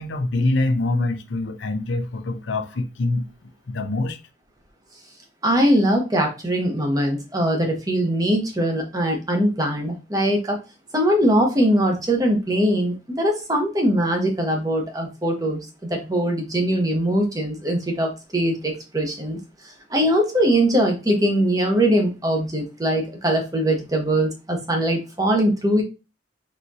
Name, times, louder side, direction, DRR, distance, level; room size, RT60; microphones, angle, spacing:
voice 1, 0.0-4.2, left 2 dB, 75° left, 0.6 m, -25 dB
voice 2, 5.4-10.6 10.9-19.4 19.9-25.8, right 1 dB, 20° right, 0.9 m, -21 dB
4.2 x 3.6 x 2.6 m
head